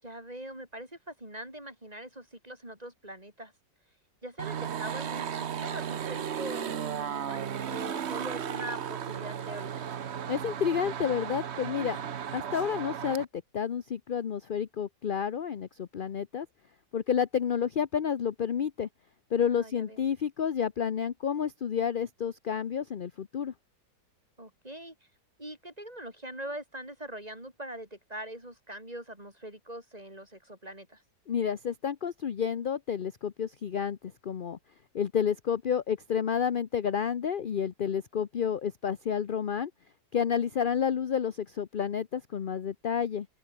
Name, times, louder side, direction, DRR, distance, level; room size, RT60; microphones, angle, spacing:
voice 1, 0.0-3.5 4.2-7.4 7.7-9.9 19.5-20.0 24.4-25.0 25.4-31.0, right 1 dB, 20° right, 6.9 m, -42 dB
sound 1, 4.4-13.2, right 8 dB, 50° right, 1.0 m, -35 dB
voice 2, 10.3-16.5 16.9-18.9 19.3-23.5 31.3-34.0 34.2-34.6 34.9-39.7 40.1-43.3, left 7 dB, 50° left, 0.6 m, -30 dB
open air
omnidirectional pair, 1.8 m